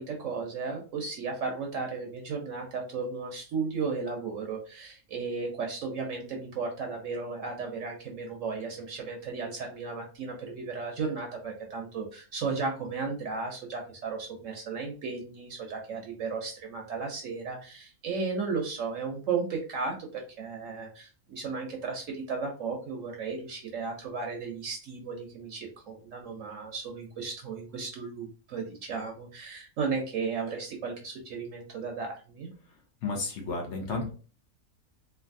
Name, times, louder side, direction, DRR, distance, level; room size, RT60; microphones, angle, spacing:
voice 1, 0.0-32.5, right 4 dB, 65° right, 1 dB, 1.0 m, -35 dB
voice 2, 33.0-34.1, left 3 dB, 55° left, 1 dB, 1.0 m, -32 dB
3.3 x 2.5 x 2.5 m, 0.37 s
omnidirectional pair, 1.6 m